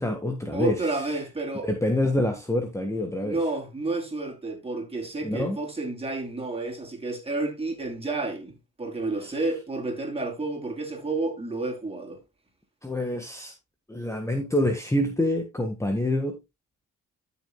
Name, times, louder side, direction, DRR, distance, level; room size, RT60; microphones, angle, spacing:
voice 1, 0.0-1.2 1.6-3.4 5.2-5.6 12.8-13.5 13.9-16.4, left 1 dB, 10° left, 1.5 m, -26 dB
voice 2, 0.5-1.7 3.2-12.2, right 2 dB, 20° right, 3.8 m, -30 dB
13.0 x 6.7 x 2.3 m
cardioid pair, 90°, 30 cm